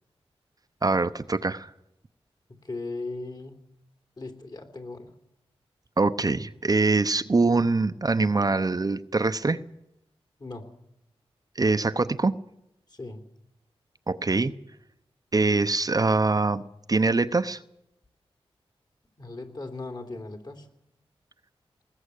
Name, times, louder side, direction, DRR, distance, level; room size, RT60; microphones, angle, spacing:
voice 1, 0.8-1.7 6.0-9.6 11.6-12.3 14.1-14.5 15.3-16.6 16.9-17.6, right 3 dB, 35° right, 11 dB, 0.8 m, -23 dB
voice 2, 2.5-3.7 4.2-5.1 10.4-10.7 12.9-13.2 19.2-20.7, left 3 dB, 40° left, 6 dB, 3.3 m, -38 dB
19.5 x 17.5 x 8.4 m, 0.83 s
cardioid pair, 60°, 10 cm